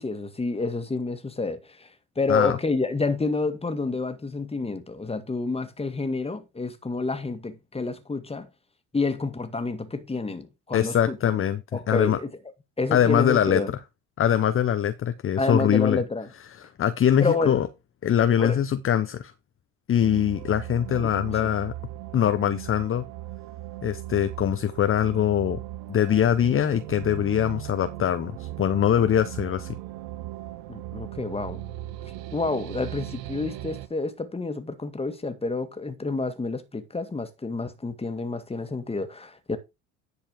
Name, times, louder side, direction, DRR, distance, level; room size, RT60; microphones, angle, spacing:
voice 1, 0.0-1.9 2.2-8.5 8.9-11.2 11.7-12.3 12.8-13.7 15.4-16.3 17.2-17.6 18.4-18.6 21.0-21.5 30.7-31.6 32.3-39.6, left 3 dB, 15° left, 2.0 m, -29 dB
voice 2, 10.7-12.2 12.9-13.6 14.2-16.0 16.6-17.7 18.0-19.3 19.9-21.7 22.1-23.0 23.8-25.6 25.9-29.8, left 10 dB, 35° left, 0.9 m, -23 dB
sound 1, 20.0-33.9, right 15 dB, 65° right, 1.1 m, -38 dB
10.5 x 4.8 x 5.1 m
hypercardioid pair, 70°, 37 cm